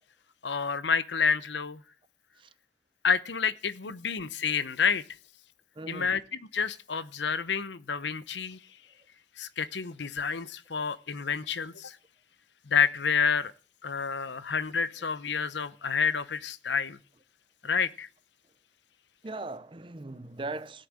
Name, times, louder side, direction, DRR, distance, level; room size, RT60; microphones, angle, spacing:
voice 1, 0.4-1.8 3.0-5.0 5.9-8.6 9.4-12.0 12.7-13.5 13.8-17.0 17.6-18.1, left 6 dB, 75° left, 0.9 m, -29 dB
voice 2, 5.8-6.1 19.2-20.9, right 2 dB, 25° right, 0.6 m, -39 dB
17.0 x 6.7 x 8.8 m
head